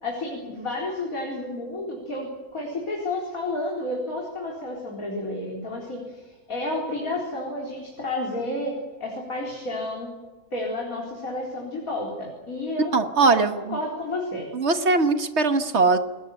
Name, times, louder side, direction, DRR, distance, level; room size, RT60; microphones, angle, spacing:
voice 1, 0.0-10.1 10.5-12.9 13.2-14.5, left 2 dB, 70° left, -2 dB, 4.7 m, -31 dB
voice 2, 12.9-13.8 14.5-16.0, right 3 dB, 50° right, 9 dB, 1.7 m, -21 dB
27.5 x 20.5 x 8.4 m, 1.3 s
omnidirectional pair, 1.5 m